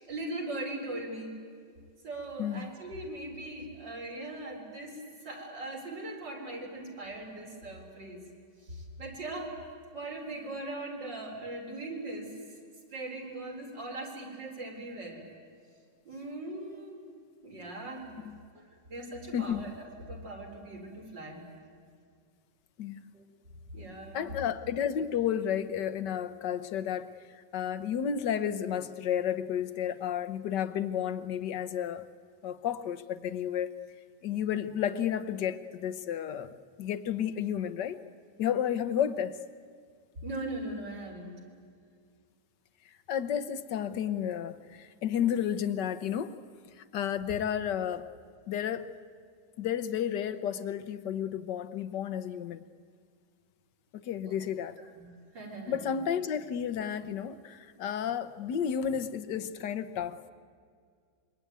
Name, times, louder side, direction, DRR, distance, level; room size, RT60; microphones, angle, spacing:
voice 1, 0.0-1.3 2.0-5.0 5.2-8.2 8.7-9.5 9.9-12.3 12.9-15.2 16.0-17.0 17.4-18.1 18.5-18.6 18.9-21.4 23.1-23.2 23.7-24.3 40.2-41.4 54.3-54.4 54.9-55.9, right 2 dB, 80° right, 4.9 m, -40 dB
voice 2, 2.4-2.7 18.2-18.4 19.3-19.7 22.8-23.1 24.1-27.1 27.5-32.1 32.4-33.7 34.2-38.0 38.4-39.4 43.1-46.4 46.9-48.1 48.5-48.9 49.6-52.6 53.9-54.8 55.7-60.3, left 9 dB, 75° left, 1.6 m, -32 dB
26.5 x 22.5 x 9.4 m
omnidirectional pair, 1.9 m